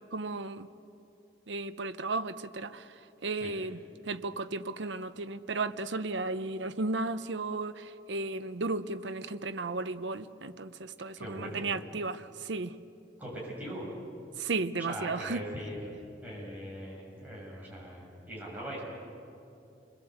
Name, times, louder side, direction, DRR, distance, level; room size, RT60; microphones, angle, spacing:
voice 1, 0.1-0.7 1.5-3.8 4.1-12.7 14.4-15.4, right 3 dB, 70° right, 12 dB, 0.8 m, -34 dB
voice 2, 11.2-11.6 13.2-13.9 14.9-15.9 16.2-18.8, equal, 10° right, -5 dB, 7.4 m, -40 dB
28.5 x 21.5 x 8.1 m, 2.8 s
head